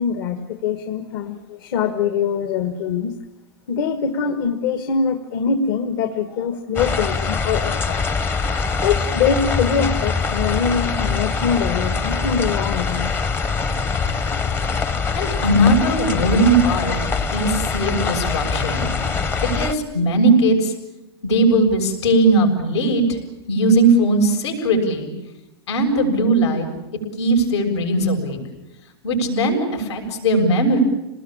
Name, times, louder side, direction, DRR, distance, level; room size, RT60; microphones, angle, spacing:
voice 1, 0.0-3.1 3.7-8.0 8.8-13.1, left 6 dB, 55° left, 8 dB, 1.6 m, -23 dB
sound 1, 6.8-19.7, left 4 dB, 15° left, 0.8 m, -23 dB
voice 2, 15.1-17.0 17.3-18.9 19.4-20.7 21.2-23.2 23.5-25.1 25.7-26.7 27.2-28.4 29.0-30.8, right 1 dB, 80° left, 3 dB, 7.0 m, -18 dB
27.5 x 20.0 x 8.8 m, 0.99 s
supercardioid pair, 160°, 14 cm